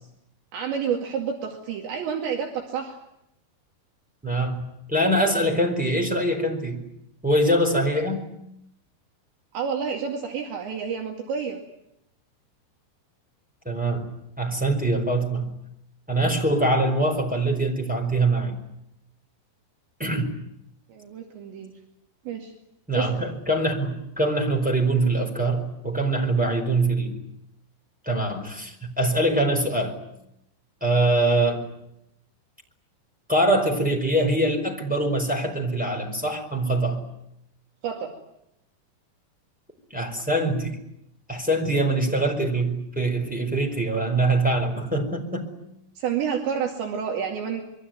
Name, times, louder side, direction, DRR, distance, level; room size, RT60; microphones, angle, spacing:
voice 1, 0.5-3.0 9.5-11.6 20.9-21.7 22.3-22.5 22.9-23.2 37.8-38.1 46.0-47.6, right 7 dB, 70° right, 1 dB, 4.5 m, -29 dB
voice 2, 4.2-4.6 4.9-6.8 7.2-8.3 13.6-14.1 14.4-15.5 16.1-18.6 20.0-20.3 22.9-27.2 28.0-30.0 30.8-31.7 33.3-37.0 39.9-40.8 41.3-45.5, right 1 dB, ahead, 1 dB, 4.0 m, -23 dB
26.5 x 23.0 x 9.4 m, 0.82 s
omnidirectional pair, 5.5 m